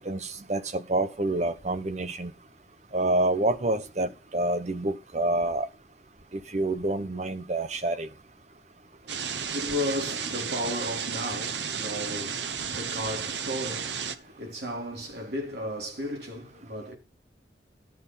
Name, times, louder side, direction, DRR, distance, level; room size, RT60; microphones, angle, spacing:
voice 1, 0.0-2.3 2.9-5.7 6.3-8.1, right 2 dB, 40° right, 1.0 m, -28 dB
voice 2, 9.0-16.9, left 1 dB, 65° right, 3.9 m, -34 dB
sound 1, 9.1-14.2, right 7 dB, 85° right, 1.0 m, -33 dB
12.5 x 6.2 x 5.6 m
head